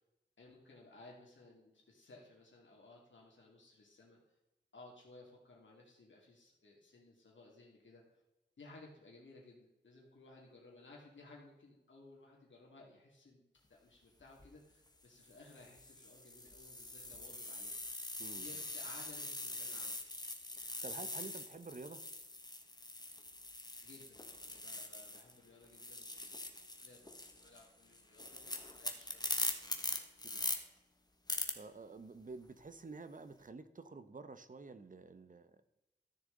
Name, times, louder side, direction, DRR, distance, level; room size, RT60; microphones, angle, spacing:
voice 1, 0.4-4.4 4.7-8.2 8.6-13.4 13.8-17.7 18.4-20.0 23.8-29.6 30.3-30.5, left 2 dB, 80° left, -3 dB, 2.4 m, -59 dB
sound 1, 14.2-14.5 15.2-25.4 25.6-30.6 31.3-31.5, left 2 dB, 20° left, 1.2 m, -43 dB
voice 2, 18.2-18.6 20.8-22.0 30.2-30.4 31.5-35.6, right 3 dB, 45° right, 12 dB, 0.8 m, -50 dB
13.5 x 6.8 x 3.9 m, 0.96 s
wide cardioid pair, 95°, 19 cm